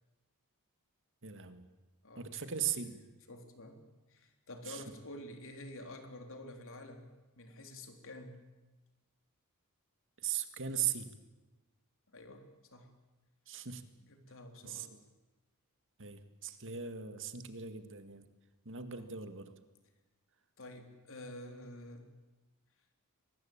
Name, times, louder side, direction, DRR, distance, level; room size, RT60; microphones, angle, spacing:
voice 1, 1.2-1.6 2.2-3.0 4.7-4.8 10.2-11.1 13.5-13.8 14.6-15.0 16.0-18.2 18.7-19.5, right 8 dB, 60° right, 10 dB, 2.0 m, -39 dB
voice 2, 2.0-2.4 3.3-3.8 4.1-8.4 12.1-12.9 14.1-14.9 18.9-19.0 20.6-22.1, left 1 dB, 65° left, 5 dB, 3.7 m, -49 dB
23.5 x 20.0 x 8.8 m, 1.1 s
head